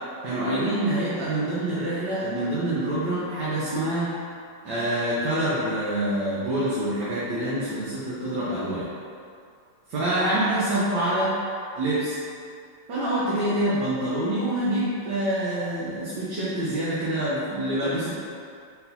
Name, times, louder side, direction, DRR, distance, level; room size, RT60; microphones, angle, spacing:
voice 1, 0.2-4.1 4.6-8.9 9.9-11.3 11.7-12.2 12.9-18.1, right 1 dB, 80° right, -10 dB, 1.5 m, -26 dB
4.2 x 4.1 x 2.7 m, 2.4 s
omnidirectional pair, 1.9 m